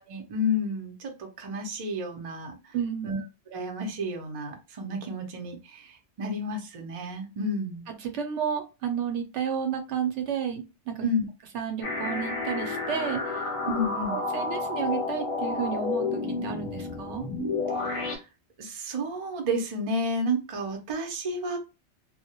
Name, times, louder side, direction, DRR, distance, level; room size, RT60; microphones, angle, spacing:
voice 1, 0.0-2.8 3.0-3.2 3.5-7.9 11.0-11.2 13.7-14.2 17.8-18.3 18.6-21.6, left 1 dB, 45° right, 3 dB, 0.5 m, -31 dB
voice 2, 2.7-3.1 8.0-11.0 11.5-13.5 14.1-17.3, right 8 dB, 85° right, 5 dB, 0.9 m, -31 dB
sound 1, 11.8-18.2, left 3 dB, 40° left, 0.5 m, -31 dB
2.1 x 2.1 x 2.7 m, 0.27 s
omnidirectional pair, 1.2 m